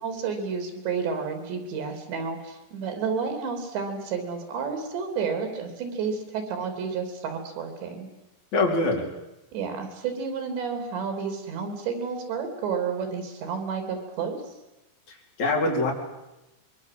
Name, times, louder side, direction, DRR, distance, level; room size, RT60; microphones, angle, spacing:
voice 1, 0.0-8.1 9.5-14.4, right 5 dB, 80° right, 6 dB, 5.5 m, -31 dB
voice 2, 8.5-9.0 15.4-15.9, left 2 dB, 40° left, 0 dB, 5.0 m, -23 dB
25.0 x 22.5 x 7.7 m, 0.97 s
omnidirectional pair, 5.0 m